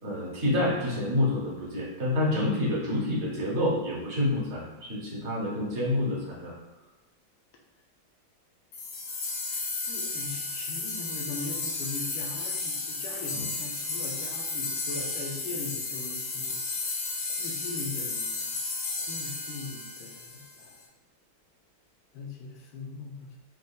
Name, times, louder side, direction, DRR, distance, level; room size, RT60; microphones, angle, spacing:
voice 1, 0.0-6.5 13.3-13.5, left 1 dB, 40° right, -5 dB, 1.2 m, -28 dB
sound 1, 8.7-20.7, left 3 dB, 60° left, 1.4 m, -33 dB
voice 2, 9.8-16.6 17.4-18.5 19.1-20.7 22.1-23.3, left 3 dB, 80° left, 0 dB, 1.7 m, -40 dB
5.4 x 2.6 x 3.5 m, 1.1 s
omnidirectional pair, 2.3 m